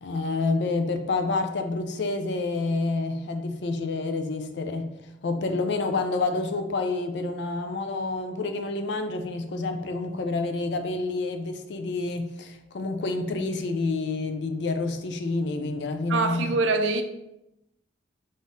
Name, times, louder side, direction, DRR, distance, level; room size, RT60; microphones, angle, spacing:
voice 1, 0.0-4.9 5.2-16.5, left 3 dB, 65° left, 0.4 m, -28 dB
voice 2, 16.1-17.0, right 3 dB, 85° right, 0.4 m, -24 dB
3.9 x 2.6 x 3.5 m
head